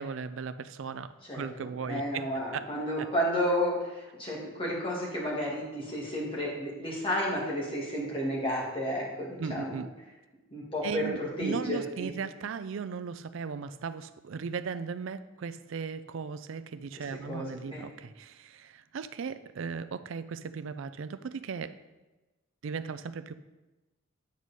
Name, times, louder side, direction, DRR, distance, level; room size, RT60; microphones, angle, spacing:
voice 1, 0.0-2.6 3.0-3.1 9.4-9.9 10.8-21.8 22.6-23.3, right 5 dB, 65° right, 12 dB, 0.4 m, -37 dB
voice 2, 1.3-9.8 10.5-12.1 17.3-17.4 17.7-17.9, equal, 25° left, -4 dB, 2.0 m, -32 dB
9.5 x 4.7 x 4.2 m, 1.1 s
head